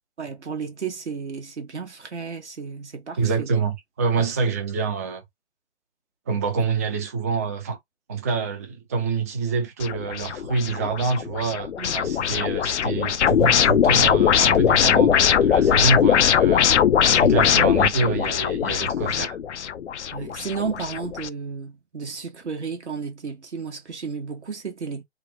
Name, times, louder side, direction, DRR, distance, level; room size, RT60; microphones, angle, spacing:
voice 1, 0.2-3.5 4.2-4.3 11.8-11.9 16.7-16.9 17.5-17.7 20.1-25.0, right 5 dB, 80° right, 1.1 m, -33 dB
voice 2, 3.2-5.2 6.3-7.8 8.1-16.7 17.1-19.4, right 4 dB, 15° right, 0.3 m, -26 dB
sound 1, 9.8-21.3, left 8 dB, 80° left, 0.5 m, -20 dB
3.5 x 2.1 x 3.9 m
figure-of-eight pair, 130°, 34 cm